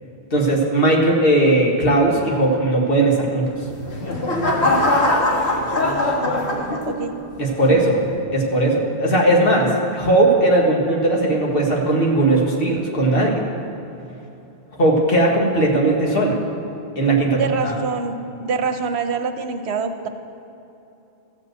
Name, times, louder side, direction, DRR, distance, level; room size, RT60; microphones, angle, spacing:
voice 1, 0.3-3.4 7.4-8.1 8.3-13.4 14.8-16.3 17.0-17.7, right 1 dB, 60° left, -1 dB, 1.8 m, -18 dB
sound 1, 3.6-7.2 7.7-8.0, left 2 dB, 80° left, 1.8 m, -21 dB
voice 2, 4.6-7.1 17.3-20.1, right 5 dB, 80° right, 7 dB, 1.0 m, -27 dB
14.5 x 5.4 x 7.7 m, 2.9 s
omnidirectional pair, 1.1 m